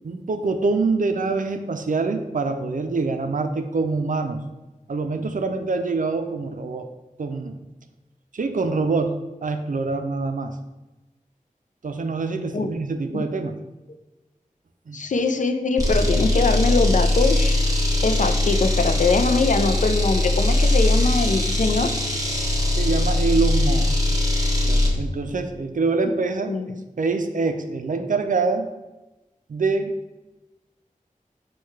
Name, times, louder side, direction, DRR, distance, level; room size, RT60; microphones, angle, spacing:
voice 1, 0.0-4.4 4.9-6.9 7.2-7.6 8.3-10.6 11.8-13.6 14.9-15.0 22.8-24.0 24.7-26.6 27.0-28.7 29.5-30.0, right 3 dB, 70° right, 7 dB, 0.4 m, -25 dB
voice 2, 14.9-17.6 18.0-21.9 26.0-26.1 26.5-26.8, left 4 dB, 60° left, 7 dB, 0.4 m, -22 dB
sound 1, 15.8-25.0, left 1 dB, 25° right, 0.9 m, -21 dB
4.5 x 2.3 x 4.6 m, 1.1 s
wide cardioid pair, 60°, 14 cm